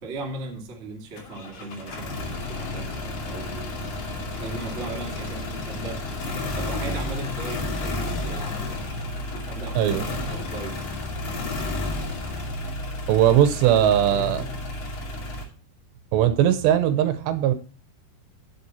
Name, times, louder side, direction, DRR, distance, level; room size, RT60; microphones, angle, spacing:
voice 1, 0.0-3.8 4.3-6.1 6.3-9.1 9.5-10.9 13.6-14.0, right 3 dB, 40° right, 0.9 m, -37 dB
sound 1, 1.2-15.5, left 2 dB, 55° left, 3.6 m, -31 dB
voice 2, 9.8-10.1 13.1-14.5 16.1-17.5, right 11 dB, 80° right, 2.8 m, -19 dB
11.0 x 7.8 x 4.2 m
omnidirectional pair, 5.3 m